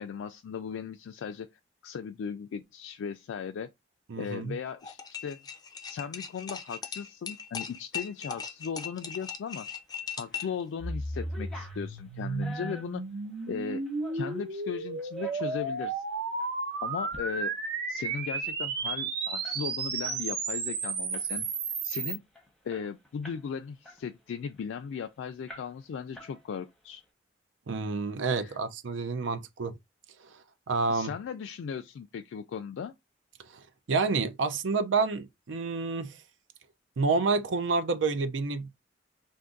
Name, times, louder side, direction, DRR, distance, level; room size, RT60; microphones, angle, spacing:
voice 1, 0.0-1.5 1.8-3.7 4.2-5.4 5.9-9.7 10.2-13.0 13.5-13.9 14.1-16.0 16.8-17.5 17.9-21.5 21.8-22.3 22.6-27.0 28.4-28.6 30.9-32.9, left 6 dB, 90° left, 0.3 m, -37 dB
voice 2, 4.1-4.5 27.7-29.7 30.2-31.1 33.4-36.2 37.0-38.7, right 4 dB, 80° right, 0.5 m, -29 dB
sound 1, 4.8-10.6, left 6 dB, 20° left, 0.4 m, -39 dB
sound 2, 10.0-10.6 10.9-14.5 15.0-15.9 16.4-16.5 16.9-17.2 17.5-17.6 17.9-20.2 20.6-20.8 21.1-21.6 22.0-22.1 22.4-23.5 23.8-25.0 25.5-25.9 26.1-26.8, left 1 dB, ahead, 0.8 m, -48 dB
sound 3, 10.8-22.2, right 4 dB, 55° right, 1.0 m, -33 dB
2.6 x 2.5 x 3.6 m
head